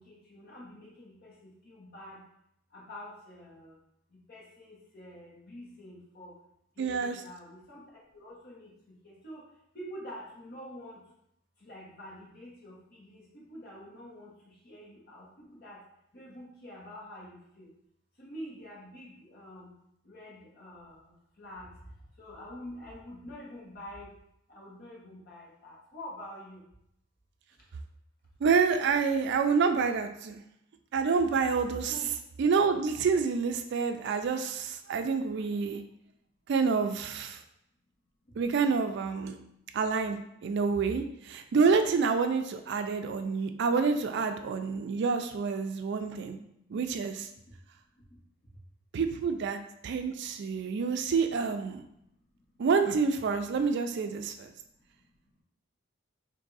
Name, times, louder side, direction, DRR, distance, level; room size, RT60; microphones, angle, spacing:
voice 1, 0.0-2.2 2.7-3.8 4.3-6.3 6.8-8.7 9.0-9.4 9.7-11.0 11.6-15.8 16.1-17.7 18.2-19.7 20.0-21.7 22.2-24.1 24.5-26.6 31.9-32.1, equal, 50° left, -5 dB, 1.3 m, -47 dB
voice 2, 6.8-7.2 28.4-30.4 30.9-31.9 32.4-35.8 36.5-37.4 38.4-39.4 39.7-46.4 46.7-47.3 48.9-51.8 52.6-54.5, right 5 dB, 60° right, 7 dB, 0.3 m, -28 dB
3.5 x 2.6 x 4.0 m, 0.78 s
head